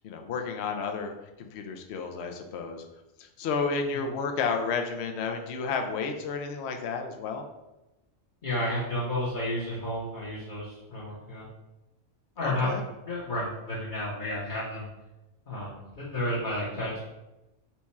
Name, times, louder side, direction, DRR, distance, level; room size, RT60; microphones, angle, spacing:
voice 1, 0.0-1.1 1.4-2.8 3.2-7.4 12.4-12.8, left 5 dB, 65° left, 4 dB, 0.8 m, -31 dB
voice 2, 8.4-11.5 12.4-14.9 15.5-17.1, left 1 dB, 45° left, -8 dB, 1.1 m, -32 dB
4.4 x 2.3 x 4.1 m, 0.99 s
omnidirectional pair, 1.3 m